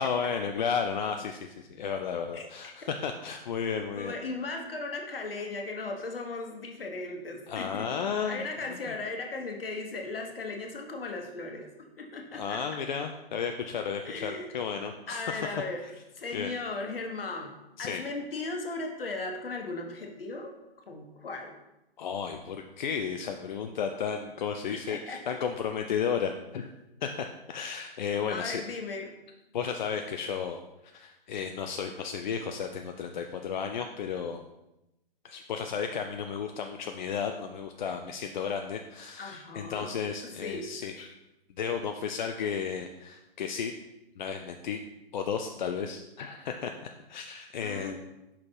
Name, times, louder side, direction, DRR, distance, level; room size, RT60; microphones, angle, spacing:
voice 1, 0.0-4.1 7.5-8.4 8.9-9.0 12.3-15.5 16.3-16.5 17.8-18.0 22.0-26.7 27.0-28.6 29.5-30.6 30.9-34.4 35.2-40.9 41.6-43.7 44.2-44.8 45.1-48.0, left 6 dB, 50° left, 5 dB, 0.5 m, -33 dB
voice 2, 3.9-7.9 8.3-11.7 12.0-12.6 14.0-14.5 15.1-15.8 16.1-20.5 20.9-21.6 24.7-25.4 28.1-29.1 39.2-39.9 40.2-41.1 47.6-48.0, left 3 dB, 70° left, 3 dB, 1.3 m, -37 dB
5.7 x 4.2 x 4.7 m, 0.94 s
figure-of-eight pair, 125°, 30 cm